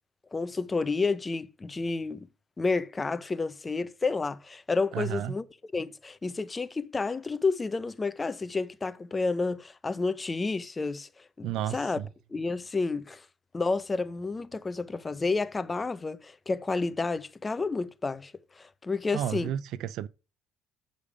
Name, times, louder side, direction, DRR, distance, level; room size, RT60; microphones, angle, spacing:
voice 1, 0.3-2.3 2.6-5.4 5.7-12.0 12.3-13.2 13.5-19.5, left 3 dB, 15° left, 0.5 m, -30 dB
voice 2, 4.9-5.4 11.4-12.1 19.1-20.1, right 11 dB, 60° right, 0.4 m, -32 dB
8.3 x 5.1 x 5.0 m
cardioid pair, 165°, 0 cm